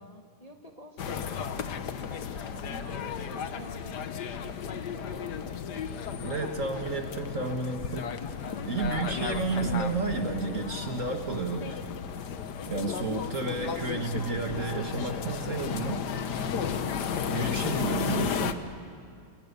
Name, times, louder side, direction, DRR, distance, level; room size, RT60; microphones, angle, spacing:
voice 1, 0.0-1.7 2.1-7.4 8.4-9.0, left 1 dB, 20° left, 3 dB, 1.3 m, -48 dB
sound 1, 1.0-18.5, left 7 dB, 55° left, 1.5 m, -34 dB
voice 2, 6.2-8.1 8.7-11.8 12.7-16.1 17.3-18.6, right 4 dB, 40° right, 4 dB, 1.8 m, -31 dB
30.0 x 29.0 x 6.8 m, 2.2 s
omnidirectional pair, 2.4 m